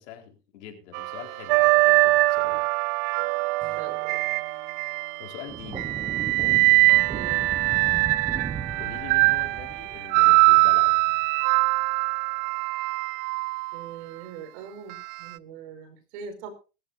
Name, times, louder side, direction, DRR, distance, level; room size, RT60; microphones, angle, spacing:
voice 1, 0.0-2.6 5.2-5.9 8.7-11.0, left 10 dB, 75° left, 3 dB, 4.3 m, -43 dB
sound 1, 0.9-5.3 5.8-13.8 14.9-15.1, right 24 dB, 50° right, 0.6 m, -22 dB
Strum, 3.6-7.9, left 3 dB, 25° left, 5.3 m, -57 dB
voice 2, 3.8-4.2 7.1-7.5 13.7-16.5, right 7 dB, 70° right, 9 dB, 5.1 m, -41 dB
sound 2, 5.5-11.1, right 6 dB, 15° right, 0.9 m, -37 dB
20.5 x 14.0 x 2.7 m, 0.32 s
supercardioid pair, 125°, 35 cm